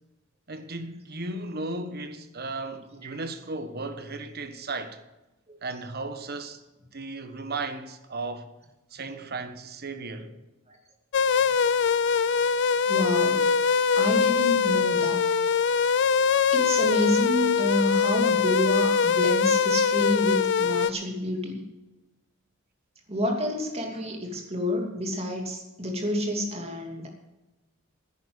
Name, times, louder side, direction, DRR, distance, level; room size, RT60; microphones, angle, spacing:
voice 1, 0.5-5.0 5.6-6.6 6.9-8.5 8.9-10.3, right 3 dB, 50° right, 1.3 m, -35 dB
sound 1, 11.1-20.9, left 6 dB, 60° left, 0.5 m, -23 dB
voice 2, 12.9-13.5 14.0-15.2 16.5-21.6 23.1-27.1, left 1 dB, 30° right, 2.7 m, -28 dB
10.0 x 10.0 x 8.1 m
head